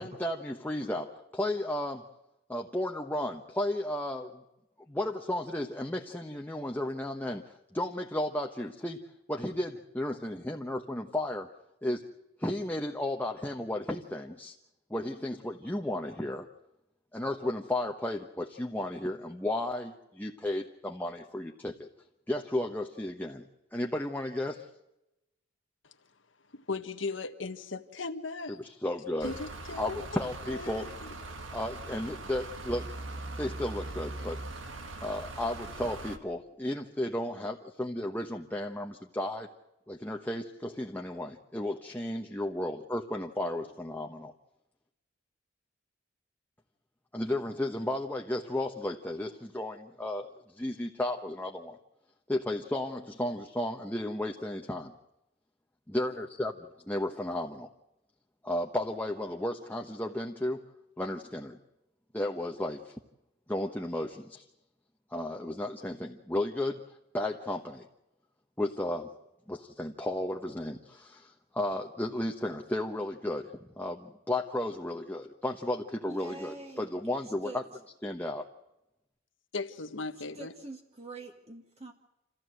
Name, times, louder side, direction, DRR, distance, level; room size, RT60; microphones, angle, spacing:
voice 1, 0.0-2.1 2.5-4.4 4.9-9.0 9.3-11.5 11.8-12.1 12.4-14.5 14.9-16.5 17.1-21.9 22.3-23.4 23.7-24.7 28.5-29.3 29.8-30.9 31.5-32.9 33.4-34.4 35.0-39.5 39.9-44.3 47.1-50.3 50.5-51.8 52.3-54.9 55.9-56.5 56.9-57.7 58.4-60.6 61.0-61.6 62.1-62.9 63.5-64.4 65.1-66.8 67.1-67.9 68.6-69.1 69.5-73.5 73.8-77.6 78.0-78.5, left 1 dB, 10° left, 1.1 m, -34 dB
voice 2, 26.5-28.6 29.2-30.0 30.5-31.1 79.5-80.5, left 3 dB, 80° left, 1.5 m, -37 dB
sound 1, 29.2-36.2, right 2 dB, 90° right, 1.7 m, -41 dB
voice 3, 76.0-76.9 77.4-77.6 80.3-81.9, right 2 dB, 35° right, 2.0 m, -44 dB
28.0 x 15.5 x 7.8 m
head